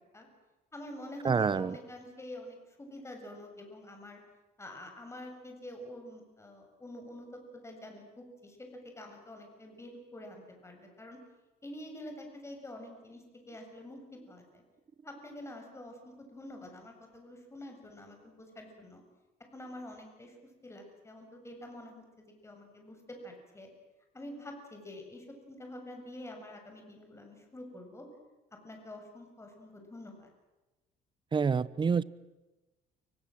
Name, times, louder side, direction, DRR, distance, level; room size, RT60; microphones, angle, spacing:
voice 1, 0.7-4.2 4.6-11.2 11.6-14.6 15.0-19.0 19.5-23.7 24.1-28.1 28.6-30.3, left 1 dB, 15° left, 3 dB, 7.3 m, -47 dB
voice 2, 1.2-1.8 31.3-32.0, right 5 dB, 30° right, 19 dB, 0.9 m, -27 dB
29.5 x 25.0 x 7.8 m, 1.1 s
cardioid pair, 110°, 17 cm